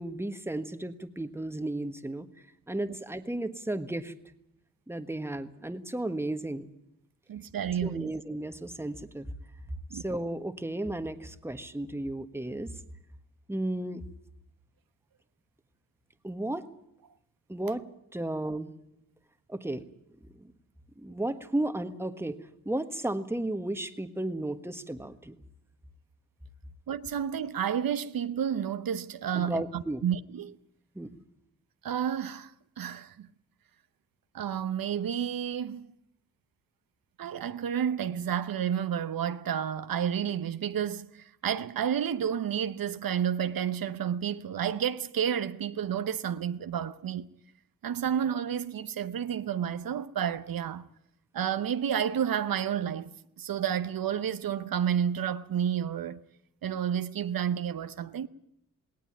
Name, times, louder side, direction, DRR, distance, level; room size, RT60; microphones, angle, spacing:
voice 1, 0.0-2.3 2.7-4.1 4.9-6.7 7.8-9.3 9.9-12.7 13.5-14.0 16.2-16.7 17.5-17.8 18.1-18.7 19.5-19.8 20.4-20.5 21.0-22.4 22.6-25.3 29.3-30.0 30.9-31.2, right 1 dB, 5° right, 1.5 m, -34 dB
voice 2, 7.3-8.1 9.9-10.0 26.9-30.6 31.8-33.3 34.3-35.9 37.2-47.3 47.8-50.9 51.3-56.2 56.6-58.3, right 9 dB, 80° right, 0.9 m, -31 dB
19.0 x 18.5 x 9.2 m
cardioid pair, 90°, 34 cm